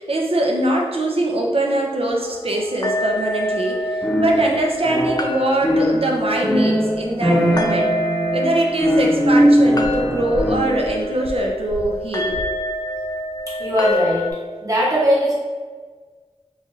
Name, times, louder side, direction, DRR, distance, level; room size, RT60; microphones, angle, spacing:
voice 1, 0.0-7.9 8.3-12.4, right 1 dB, 60° right, 0 dB, 0.6 m, -22 dB
sound 1, 2.1-14.3, left 1 dB, 35° left, 0.4 m, -27 dB
sound 2, 4.0-5.4 5.6-10.9, equal, ahead, 0.7 m, -19 dB
voice 2, 13.5-14.2 14.6-15.3, equal, 30° right, -6 dB, 1.1 m, -19 dB
4.0 x 2.4 x 3.1 m, 1.5 s
wide cardioid pair, 60°, 11 cm